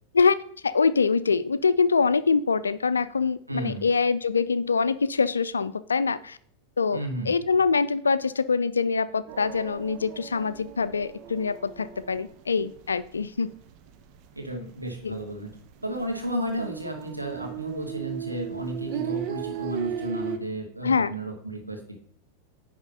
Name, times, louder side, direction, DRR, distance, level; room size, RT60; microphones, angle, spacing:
voice 1, 0.6-6.4 6.8-7.0 7.3-13.5 15.0-15.2 20.8-21.1, left 5 dB, 75° left, 15 dB, 0.4 m, -24 dB
voice 2, 3.5-3.8 6.9-7.3 14.4-15.5 15.8-22.0, right 1 dB, 85° right, 1 dB, 1.8 m, -33 dB
sound 1, 9.3-13.2 13.5-14.2 14.5-14.6 14.9-20.4, right 8 dB, 40° right, 0.9 m, -36 dB
9.8 x 3.6 x 5.4 m, 0.62 s
figure-of-eight pair, 90°, 0 cm